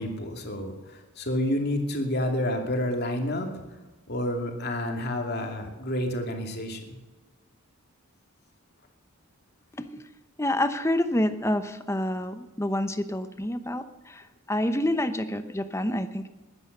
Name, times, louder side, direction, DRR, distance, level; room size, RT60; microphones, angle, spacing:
voice 1, 0.0-3.5 4.1-6.9, left 1 dB, 45° left, 3 dB, 2.6 m, -29 dB
voice 2, 10.4-16.3, left 1 dB, 10° left, 10 dB, 0.9 m, -28 dB
21.0 x 9.9 x 6.7 m, 1.2 s
head